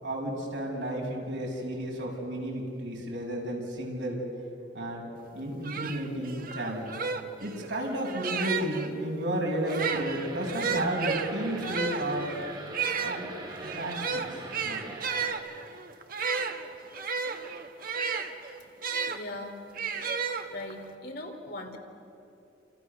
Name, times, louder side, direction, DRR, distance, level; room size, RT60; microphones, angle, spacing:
voice 1, 0.0-4.2 4.7-5.0 5.3-6.9 7.4-12.3 13.0-13.3 13.6-14.9, right 1 dB, 80° right, -1 dB, 6.6 m, -32 dB
sound 1, 5.3-5.4 5.6-8.9 9.6-19.2 19.7-20.8, right 5 dB, 50° right, 1.4 m, -33 dB
sound 2, 9.8-15.3, right 2 dB, 25° right, 3.2 m, -43 dB
voice 2, 19.0-19.6 20.5-21.8, left 2 dB, 60° left, 3 dB, 3.6 m, -40 dB
28.5 x 28.0 x 6.8 m, 2.7 s
head